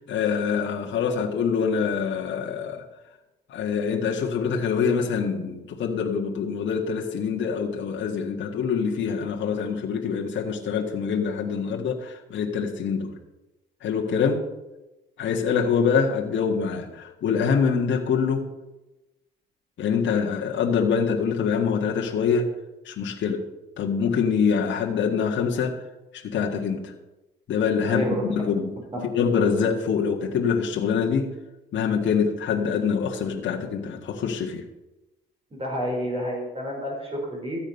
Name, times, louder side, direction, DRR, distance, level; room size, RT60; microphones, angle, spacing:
voice 1, 0.1-2.8 3.5-13.1 13.8-14.5 15.2-18.5 19.8-22.5 22.8-23.4 23.8-25.8 26.1-26.9 27.5-28.7 29.1-31.3 31.7-34.6, left 6 dB, 70° left, -1 dB, 1.7 m, -25 dB
voice 2, 27.8-28.2 28.9-29.0 35.5-37.7, equal, 30° right, -1 dB, 4.4 m, -29 dB
14.0 x 8.8 x 5.5 m, 1.0 s
cardioid pair, 90°, 20 cm